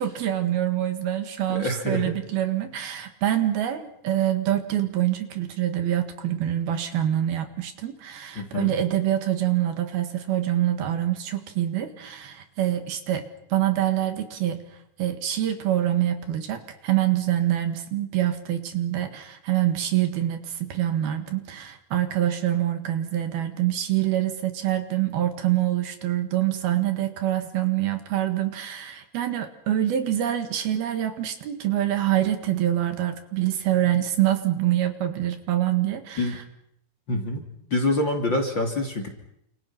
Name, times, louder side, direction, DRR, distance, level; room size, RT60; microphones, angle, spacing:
voice 1, 0.0-14.6 15.0-36.4, right 12 dB, 70° right, 8 dB, 3.5 m, -25 dB
voice 2, 1.5-2.1 8.3-8.8 36.2-36.4 37.1-37.4 37.7-39.1, left 2 dB, 30° left, 3 dB, 3.1 m, -26 dB
30.0 x 27.5 x 5.9 m, 0.76 s
omnidirectional pair, 4.9 m